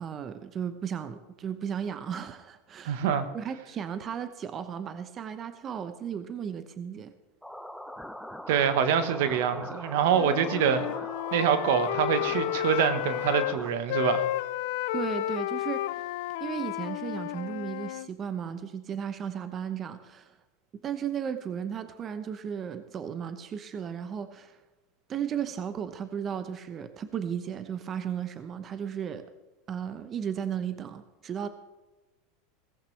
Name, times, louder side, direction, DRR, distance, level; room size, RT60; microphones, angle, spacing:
voice 1, 0.0-3.0 3.3-7.1 14.9-16.0 16.4-20.4 20.8-24.6 25.1-29.3 29.7-31.5, right 8 dB, 35° right, 10 dB, 0.9 m, -35 dB
voice 2, 2.8-3.3 8.5-10.9 11.3-14.2, right 8 dB, 70° right, 10 dB, 1.3 m, -25 dB
sound 1, 7.4-13.7, equal, ahead, 0.8 m, -42 dB
Wind instrument woodwind instrument, 10.1-13.6 13.9-18.1, left 14 dB, 70° left, 0.5 m, -32 dB
17.0 x 15.0 x 3.4 m, 1.1 s
hypercardioid pair, 105°, 0 cm